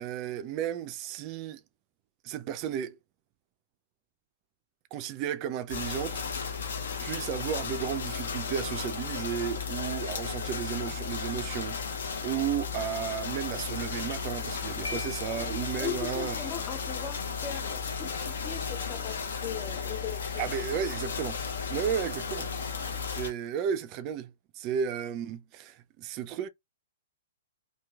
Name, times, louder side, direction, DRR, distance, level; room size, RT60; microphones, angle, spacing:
voice 1, 0.0-1.6 2.2-3.0 4.9-16.4 20.4-21.4 21.7-22.5 22.8-24.3 24.6-26.5, right 9 dB, 35° right, 0.3 m, -34 dB
sound 1, 5.7-23.3, left 5 dB, 65° left, 0.8 m, -34 dB
Piano, 14.8-15.8, left 2 dB, 85° left, 0.4 m, -41 dB
voice 2, 15.8-20.5, left 9 dB, 25° left, 0.5 m, -39 dB
2.9 x 2.6 x 2.3 m
figure-of-eight pair, 115°, 0 cm